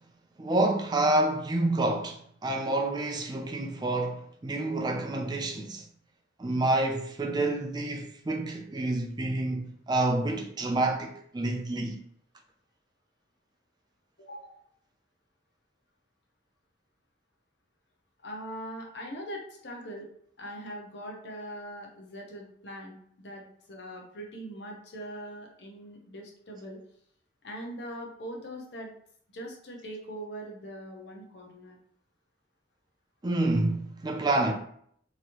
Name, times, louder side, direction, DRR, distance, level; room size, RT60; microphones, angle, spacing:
voice 1, 0.4-5.8 6.4-12.0 33.2-34.5, right 2 dB, 25° right, 0.4 m, -28 dB
voice 2, 14.2-14.6 18.2-20.1 20.4-26.8 27.4-28.9 29.3-31.8, equal, 70° left, 0.8 m, -41 dB
3.0 x 2.7 x 2.9 m
head